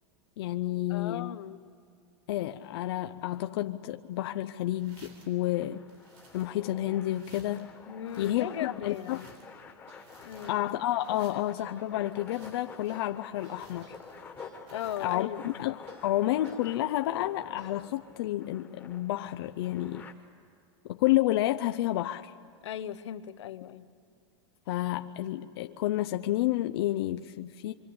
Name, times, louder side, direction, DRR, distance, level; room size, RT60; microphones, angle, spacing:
voice 1, 0.4-1.3 2.3-5.8 6.3-7.7 8.2-9.2 10.5-13.9 15.0-20.1 20.8-22.3 24.7-27.7, left 14 dB, 60° left, 8 dB, 0.6 m, -30 dB
voice 2, 0.9-1.6 7.9-9.3 10.2-10.6 14.7-15.4 22.6-23.9, left 10 dB, 85° left, 11 dB, 1.0 m, -37 dB
sound 1, 4.7-5.4 5.9-6.8 7.1-7.7 8.0-9.6 9.9-10.7 11.0-11.7 12.2-13.0 13.3-14.3 14.7-15.3, right 2 dB, 50° right, 7.8 m, -57 dB
sound 2, 5.4-20.1, left 5 dB, 10° left, 1.6 m, -49 dB
sound 3, 8.1-10.6 11.0-16.6 17.0-18.1, right 5 dB, 80° right, 2.1 m, -58 dB
26.0 x 25.0 x 8.6 m, 2.5 s
supercardioid pair, 160°, 14 cm